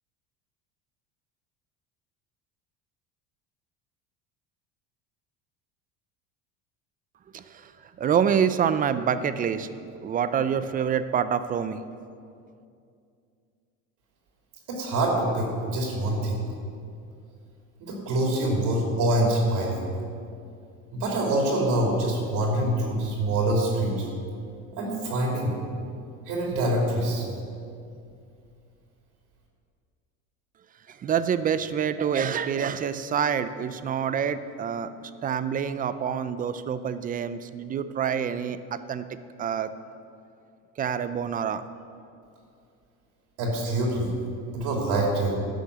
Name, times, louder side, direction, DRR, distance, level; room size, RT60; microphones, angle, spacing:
voice 1, 7.3-7.7 8.0-9.7 10.0-11.8 30.9-39.1 39.4-39.7 40.8-41.6, right 8 dB, 25° right, 13 dB, 0.4 m, -27 dB
voice 2, 14.7-16.4 17.8-19.9 20.9-24.1 24.8-25.5 26.3-27.3 43.4-44.1 44.5-45.4, right 1 dB, 65° right, -2 dB, 2.8 m, -25 dB
11.5 x 6.5 x 6.8 m, 2.4 s
cardioid pair, 120°, 33 cm